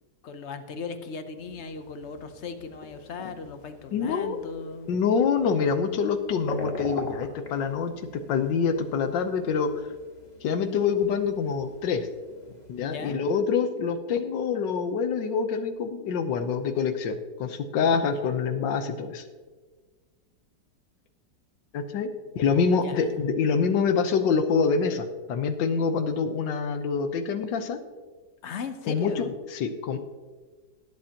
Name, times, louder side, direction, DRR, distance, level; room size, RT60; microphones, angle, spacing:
voice 1, 0.2-5.0 12.5-13.2 17.8-18.3 22.8-23.2 23.5-23.7 28.4-29.3, left 5 dB, 55° left, 9 dB, 0.8 m, -38 dB
sound 1, 1.4-13.0, left 2 dB, 25° left, 1.3 m, -44 dB
voice 2, 3.9-4.4 4.9-7.9 8.3-9.7 10.4-12.1 12.7-19.2 21.7-22.1 22.3-27.8 28.9-30.0, left 5 dB, 85° left, 9 dB, 1.5 m, -26 dB
18.0 x 7.9 x 2.9 m, 1.4 s
omnidirectional pair, 1.9 m